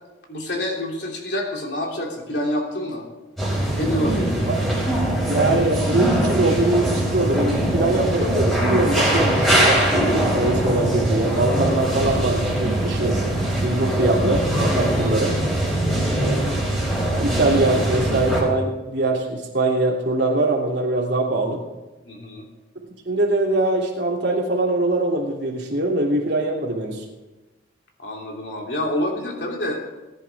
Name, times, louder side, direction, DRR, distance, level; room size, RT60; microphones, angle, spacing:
voice 1, 0.3-3.0 3.7-4.5 22.1-22.4 28.0-29.8, left 1 dB, 60° left, -1 dB, 3.2 m, -27 dB
sound 1, 3.4-18.4, right 1 dB, ahead, 5.6 m, -22 dB
voice 2, 5.3-13.2 13.6-15.4 16.1-16.9 17.2-21.6 22.8-27.0, right 2 dB, 60° right, -2 dB, 3.0 m, -23 dB
20.0 x 10.5 x 3.6 m, 1.1 s
head